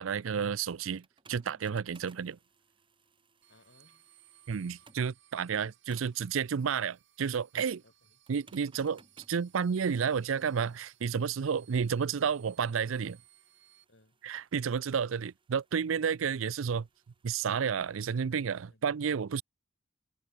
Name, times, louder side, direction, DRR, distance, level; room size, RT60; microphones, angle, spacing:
voice 1, 0.0-2.4 4.5-7.8 8.3-9.0 9.3-13.2 14.2-16.9 17.2-19.4, right 6 dB, 85° right, 0.5 m, -31 dB
sound 1, 1.0-5.2 5.9-6.3 8.3-17.9, right 3 dB, 25° right, 1.9 m, -63 dB
sound 2, 3.4-13.8, right 13 dB, 65° right, 3.5 m, -63 dB
voice 2, 3.5-4.1 7.8-8.2 11.5-11.7 13.9-14.2 16.3-16.4 18.7-18.9, left 2 dB, 65° left, 7.7 m, -64 dB
head